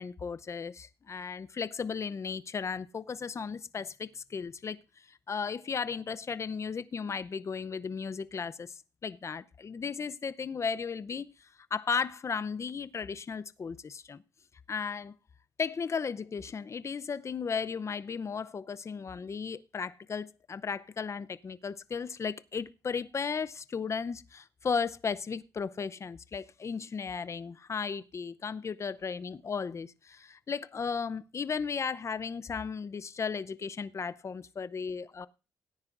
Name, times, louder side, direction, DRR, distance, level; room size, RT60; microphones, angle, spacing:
voice 1, 0.0-4.8 5.1-11.3 11.7-14.2 14.7-15.1 15.6-35.3, left 5 dB, 40° left, 0.7 m, -35 dB
17.5 x 9.7 x 2.6 m
supercardioid pair, 70°, 8 cm